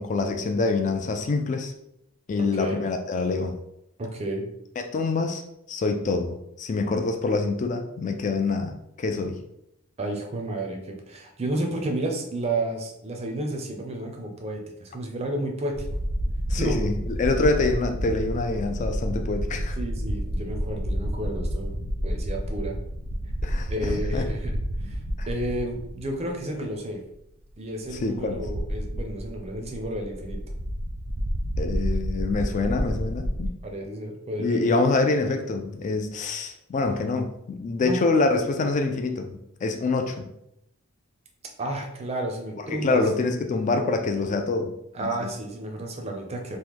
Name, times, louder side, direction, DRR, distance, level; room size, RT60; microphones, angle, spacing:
voice 1, 0.0-1.7 2.3-3.6 4.8-5.4 5.7-9.4 16.5-19.8 23.4-24.2 25.2-25.3 28.0-28.4 31.6-33.5 34.4-40.3 42.7-44.7 45.0-45.3, left 3 dB, 35° left, 5 dB, 0.3 m, -26 dB
voice 2, 2.4-2.8 4.0-4.5 10.0-15.8 16.5-16.8 19.8-22.8 23.7-24.6 24.8-25.0 25.3-27.0 27.6-30.4 33.6-34.8 37.8-38.0 41.6-43.0 44.9-46.6, right 1 dB, 30° right, 2 dB, 0.5 m, -31 dB
sound 1, 15.7-26.3 26.6-26.7 27.9-33.5, equal, 80° right, 0.6 m, -30 dB
3.0 x 2.1 x 3.4 m, 0.80 s
head